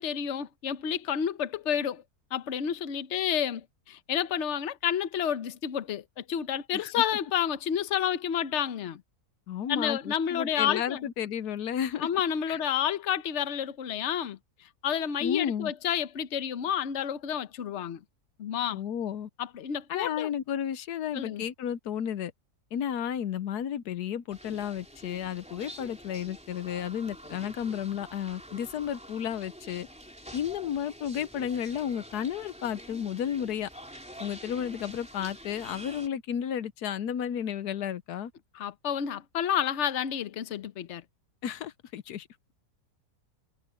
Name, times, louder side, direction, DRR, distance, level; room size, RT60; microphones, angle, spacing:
voice 1, 0.0-2.0 2.3-9.0 9.7-11.0 12.0-14.4 14.8-18.0 18.4-18.8 19.4-20.3 21.1-21.4 38.5-41.0, left 9 dB, 50° left, 1.1 m, -30 dB
voice 2, 9.5-12.1 12.5-12.6 15.2-15.7 18.7-19.3 19.9-22.3 22.7-29.9 30.3-33.7 34.2-38.3 41.4-42.3, left 9 dB, 85° left, 1.3 m, -32 dB
sound 1, 24.3-36.1, equal, 5° right, 3.2 m, -47 dB
omnidirectional pair, 1.7 m